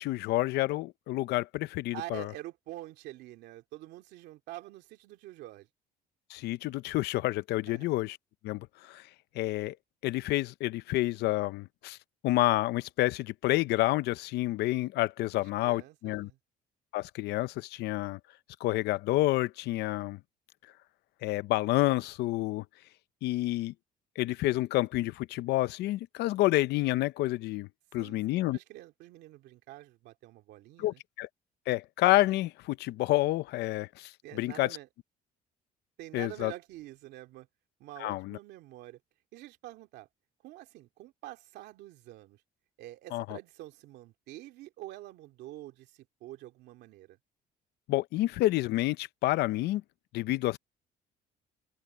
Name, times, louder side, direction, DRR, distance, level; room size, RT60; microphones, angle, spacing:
voice 1, 0.0-2.3 6.3-8.2 8.4-9.0 9.3-9.7 10.0-12.0 12.2-16.3 16.9-18.2 18.6-20.2 21.2-22.6 23.2-23.7 24.2-28.6 30.8-31.3 31.7-34.7 36.1-36.5 38.0-38.4 43.1-43.4 47.9-49.8 50.1-50.6, left 17 dB, 80° left, 0.6 m, -29 dB
voice 2, 1.9-5.7 7.7-7.9 15.4-16.4 27.9-31.0 34.2-34.9 36.0-37.5 37.8-39.0 39.3-40.1 40.4-42.4 42.8-47.2, right 16 dB, 85° right, 2.6 m, -47 dB
cardioid pair, 110°, 17 cm